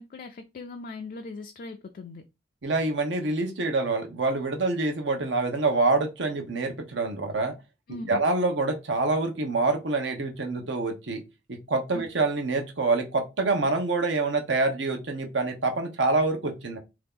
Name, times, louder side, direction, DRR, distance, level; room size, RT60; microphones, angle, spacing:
voice 1, 0.0-2.2 7.9-8.2 11.9-12.0, left 3 dB, 50° left, 0.3 m, -39 dB
voice 2, 2.6-7.5 8.1-11.2 11.7-16.8, right 3 dB, 80° right, 0.8 m, -26 dB
2.8 x 2.4 x 3.5 m
head